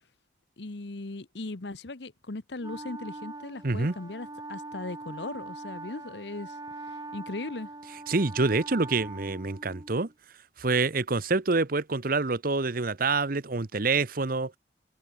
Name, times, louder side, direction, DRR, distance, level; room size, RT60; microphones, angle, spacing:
voice 1, 0.6-6.6 7.1-7.7, left 2 dB, 65° left, 1.1 m, -38 dB
Wind instrument woodwind instrument, 2.6-10.1, right 2 dB, 20° right, 3.1 m, -42 dB
voice 2, 3.6-3.9 8.1-10.1 10.6-14.5, right 3 dB, 50° right, 1.0 m, -26 dB
head